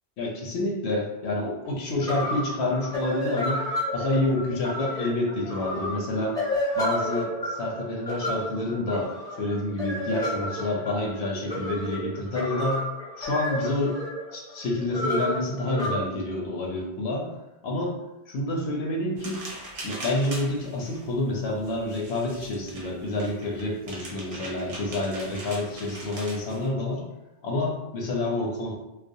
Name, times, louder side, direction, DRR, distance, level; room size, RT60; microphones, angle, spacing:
voice 1, 0.2-3.6 3.9-6.4 6.8-9.1 9.4-12.9 13.2-14.0 14.3-17.3 17.6-17.9 18.3-19.4 19.8-27.0 27.4-28.7, left 2 dB, 75° left, -1 dB, 0.8 m, -28 dB
sound 1, 1.6-1.7 2.0-15.9, left 1 dB, 5° left, 0.4 m, -31 dB
sound 2, 19.2-26.7, right 2 dB, 60° right, 0.7 m, -41 dB
2.3 x 2.1 x 2.6 m, 0.96 s
omnidirectional pair, 1.1 m